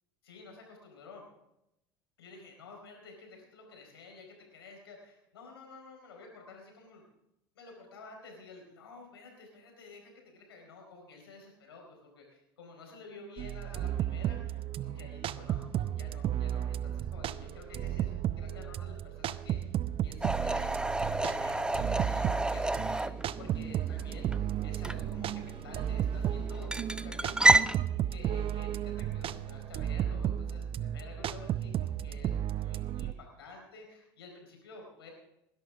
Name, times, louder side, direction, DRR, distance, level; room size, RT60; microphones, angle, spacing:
voice 1, 0.2-1.2 2.2-7.0 7.5-19.6 20.0-27.7 28.1-28.8 29.1-35.1, left 3 dB, 90° left, 1 dB, 4.5 m, -51 dB
sound 1, 13.4-33.1, right 10 dB, 45° right, 0.6 m, -34 dB
sound 2, 20.2-27.7, right 2 dB, 5° right, 0.6 m, -30 dB
20.5 x 11.5 x 3.7 m, 0.84 s
hypercardioid pair, 75°, 13 cm